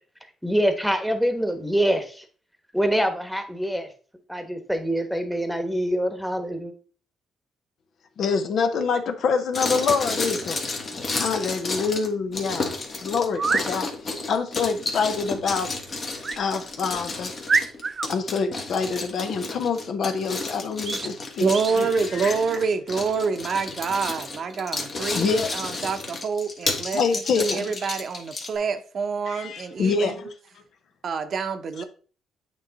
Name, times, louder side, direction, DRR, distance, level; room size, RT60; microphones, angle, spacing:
voice 1, 0.4-2.2 2.7-3.9 4.3-6.7, equal, ahead, 1.2 m, -25 dB
voice 2, 8.2-10.6 11.1-12.7 13.0-15.7 16.4-17.3 18.1-22.4 25.1-25.5 26.9-27.7 29.3-30.3, left 5 dB, 65° left, 0.8 m, -26 dB
sound 1, 9.5-28.6, left 3 dB, 40° left, 1.4 m, -32 dB
sound 2, 12.4-12.5 13.3-13.7 16.2-16.4 17.0-17.1 17.5-18.1 20.8-21.1 21.5-21.8, right 4 dB, 35° right, 0.3 m, -26 dB
voice 3, 21.4-27.0 27.4-30.2 31.0-31.8, right 5 dB, 55° right, 0.7 m, -27 dB
8.4 x 3.2 x 4.0 m
cardioid pair, 90°, 0 cm